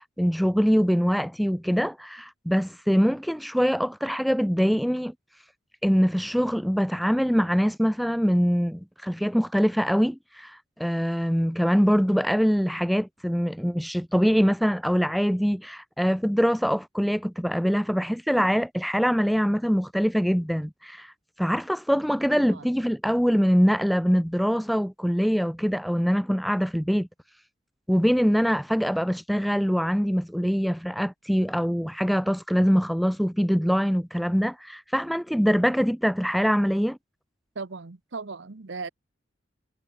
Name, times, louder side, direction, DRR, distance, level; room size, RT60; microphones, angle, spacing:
voice 1, 0.0-5.1 5.8-27.1 27.9-37.0, equal, ahead, 0.3 m, -23 dB
voice 2, 22.3-22.7 37.5-38.9, right 4 dB, 65° right, 0.9 m, -37 dB
head